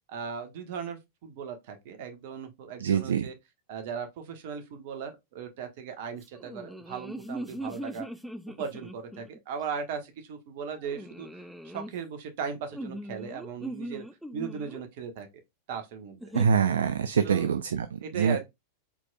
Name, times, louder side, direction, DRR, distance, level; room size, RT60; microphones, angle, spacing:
voice 1, 0.1-3.3 3.7-8.1 8.6-14.0 14.3-15.3 15.7-16.2 17.2-17.5 18.0-18.5, right 6 dB, 50° right, 1.2 m, -37 dB
voice 2, 2.8-3.3 16.3-18.4, right 7 dB, 65° right, 0.4 m, -25 dB
sound 1, 6.3-9.4 10.8-11.9 12.7-14.8 16.2-16.5, right 1 dB, ahead, 0.4 m, -40 dB
4.5 x 4.0 x 2.2 m
figure-of-eight pair, 90°, 0 cm